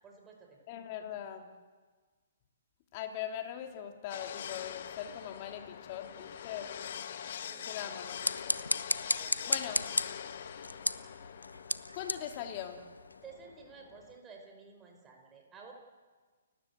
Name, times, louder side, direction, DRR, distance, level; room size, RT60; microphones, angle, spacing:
voice 1, 0.0-0.6 7.4-7.9 9.1-9.7 13.2-15.7, right 5 dB, 15° right, 2 dB, 5.1 m, -53 dB
voice 2, 0.7-1.5 2.9-6.7 7.6-8.6 9.5-9.9 11.9-12.8, left 10 dB, 35° left, 4 dB, 3.0 m, -41 dB
sound 1, 4.1-14.2, left 9 dB, 50° left, 1.4 m, -44 dB
sound 2, 8.0-13.3, left 1 dB, 90° left, 0.9 m, -35 dB
30.0 x 15.0 x 8.2 m, 1.4 s
figure-of-eight pair, 125°, 0 cm